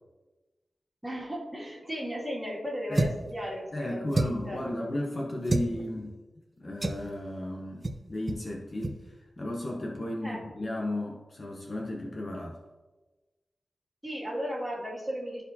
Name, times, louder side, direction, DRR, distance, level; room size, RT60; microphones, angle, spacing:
voice 1, 1.0-4.7 10.2-10.4 14.0-15.4, equal, 10° right, -4 dB, 2.2 m, -35 dB
sound 1, 2.9-3.3 4.1-4.5 5.5-5.7 6.8-7.1 7.8-8.0 8.3-8.4 8.8-9.0, right 2 dB, 30° right, 0.6 m, -28 dB
voice 2, 3.7-6.2 6.6-9.1 9.4-12.6, left 1 dB, 40° left, -1 dB, 0.8 m, -34 dB
13.0 x 4.4 x 2.8 m, 1.2 s
wide cardioid pair, 120°, 0 cm